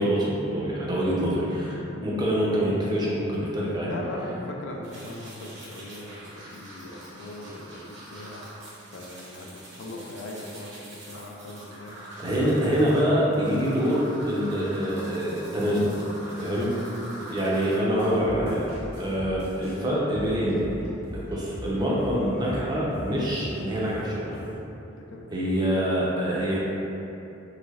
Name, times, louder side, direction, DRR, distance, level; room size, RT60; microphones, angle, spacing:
voice 1, 0.0-3.9 12.2-16.0 16.4-16.7 17.2-18.7 19.0-20.6 21.1-24.4 25.3-26.6, equal, 20° right, -6 dB, 0.5 m, -25 dB
voice 2, 3.9-8.4 8.9-11.9 16.5-17.3 25.0-25.4, left 1 dB, 65° left, 0 dB, 0.4 m, -40 dB
sound 1, 4.8-17.8, right 1 dB, 60° right, 0.8 m, -44 dB
sound 2, 18.0-24.6, equal, 75° right, 1.1 m, -40 dB
3.2 x 3.0 x 2.3 m, 2.9 s
head